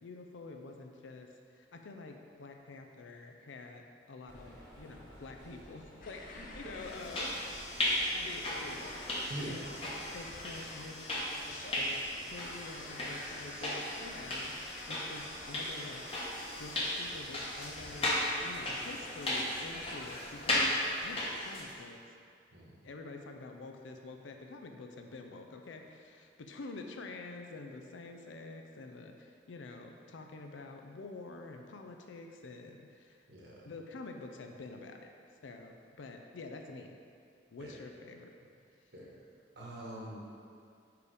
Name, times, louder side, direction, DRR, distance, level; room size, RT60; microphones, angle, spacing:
voice 1, 0.0-7.3 8.1-9.6 9.9-11.1 11.4-16.2 16.6-18.1 18.4-20.8 21.0-22.0 22.8-33.2 33.7-35.0 35.4-36.9 37.5-38.3, left 3 dB, 90° left, 4 dB, 0.5 m, -47 dB
sound 1, 4.3-10.2, equal, 10° left, 1.2 m, -54 dB
sound 2, 6.0-20.7, left 2 dB, 45° left, 0.6 m, -51 dB
sound 3, 6.8-21.8, left 1 dB, 30° left, 1.0 m, -36 dB
voice 2, 9.3-9.7 18.5-18.8 22.5-22.7 33.3-33.7 37.6-37.8 38.9-39.1 39.5-40.2, right 1 dB, 60° right, -4 dB, 1.3 m, -44 dB
5.0 x 4.8 x 4.8 m, 2.4 s
head